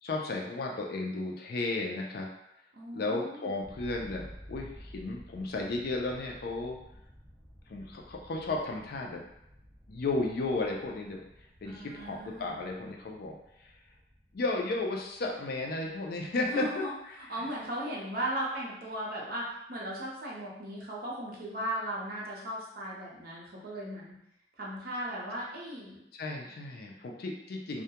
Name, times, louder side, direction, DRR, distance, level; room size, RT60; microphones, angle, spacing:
voice 1, 0.0-2.3 2.9-6.8 7.7-9.2 9.9-11.2 11.6-13.7 14.3-16.9 17.2-17.5 26.1-27.8, left 2 dB, 55° left, 1 dB, 0.4 m, -34 dB
voice 2, 2.7-3.5 11.6-12.5 16.4-16.9 17.3-24.1 24.6-26.0, right 1 dB, 55° right, -4 dB, 0.6 m, -37 dB
sound 1, 3.6-17.2, equal, 5° right, 0.6 m, -53 dB
2.2 x 2.1 x 2.8 m, 0.80 s
head